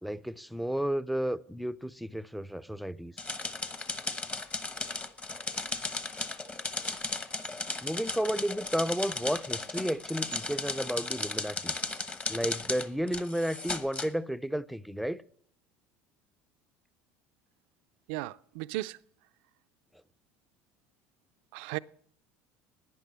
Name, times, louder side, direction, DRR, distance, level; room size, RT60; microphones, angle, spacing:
voice 1, 0.0-3.1 7.8-11.8 12.3-15.2, equal, ahead, 0.4 m, -32 dB
sound 1, 3.2-14.1, left 3 dB, 20° left, 1.0 m, -35 dB
voice 2, 18.1-19.0 21.5-21.8, right 18 dB, 80° right, 0.4 m, -35 dB
10.5 x 9.9 x 7.4 m
supercardioid pair, 105°, 6 cm